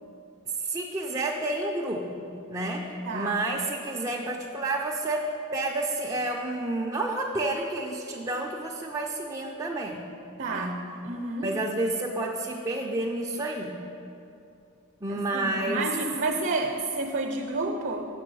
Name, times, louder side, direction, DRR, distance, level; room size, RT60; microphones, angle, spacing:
voice 1, 0.6-10.0 10.5-10.7 11.4-13.7 15.0-15.9, right 2 dB, 15° right, -2 dB, 0.5 m, -30 dB
voice 2, 3.0-3.4 10.4-10.7 11.0-11.5 15.1-18.1, right 3 dB, 50° right, 2 dB, 0.7 m, -30 dB
7.6 x 6.1 x 6.2 m, 2.7 s
head